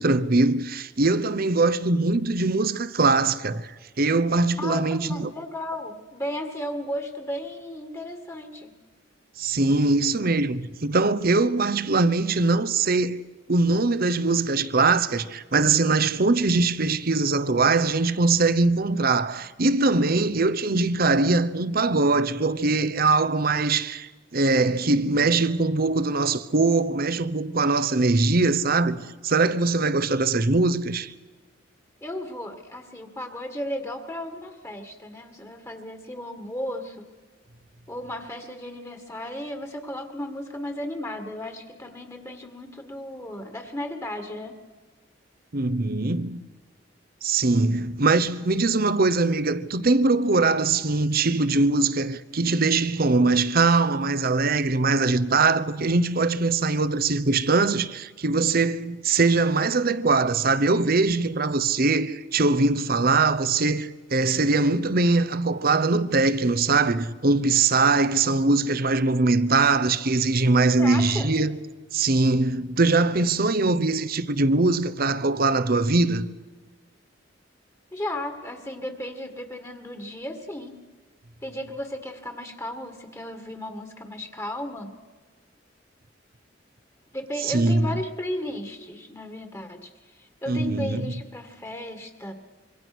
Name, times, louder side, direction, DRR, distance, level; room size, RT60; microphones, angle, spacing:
voice 1, 0.0-5.3 9.4-13.2 13.5-31.1 45.5-46.4 47.2-71.6 71.9-76.3 87.4-87.9 90.5-91.1, right 3 dB, 50° right, 0.9 m, -22 dB
voice 2, 4.6-8.7 32.0-37.1 37.9-44.6 70.8-71.3 77.9-80.8 81.4-84.9 87.1-92.3, left 1 dB, 15° left, 2.0 m, -35 dB
26.0 x 24.0 x 6.2 m
head